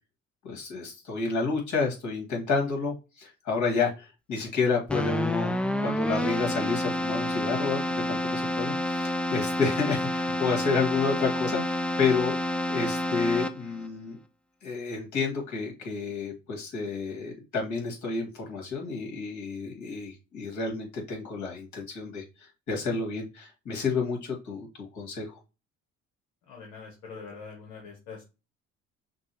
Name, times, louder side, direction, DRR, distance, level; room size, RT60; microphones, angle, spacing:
voice 1, 0.4-5.5 5.8-7.8 8.1-12.3 12.7-14.2 14.6-25.3, left 4 dB, 60° left, 0 dB, 2.3 m, -30 dB
Keyboard (musical), 4.9-13.9, left 1 dB, 5° left, 0.4 m, -29 dB
voice 2, 26.5-28.2, left 5 dB, 80° left, -1 dB, 1.2 m, -43 dB
6.0 x 2.4 x 3.0 m, 0.28 s
supercardioid pair, 65°, 32 cm